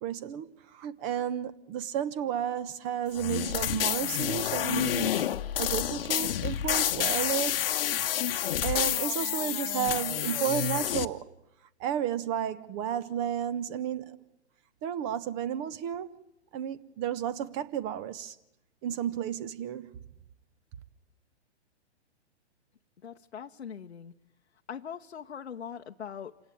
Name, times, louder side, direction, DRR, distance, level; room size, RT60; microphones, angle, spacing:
voice 1, 0.0-5.3 5.6-7.7 8.6-11.3 11.8-14.2 14.8-16.2 16.5-18.4 18.8-19.9, right 10 dB, 30° right, 1.2 m, -32 dB
sound 1, 3.1-11.1, left 11 dB, 55° left, 1.2 m, -29 dB
voice 2, 23.0-24.1 24.7-26.4, left 8 dB, 75° left, 1.0 m, -41 dB
27.5 x 17.0 x 9.2 m
figure-of-eight pair, 120°, 35 cm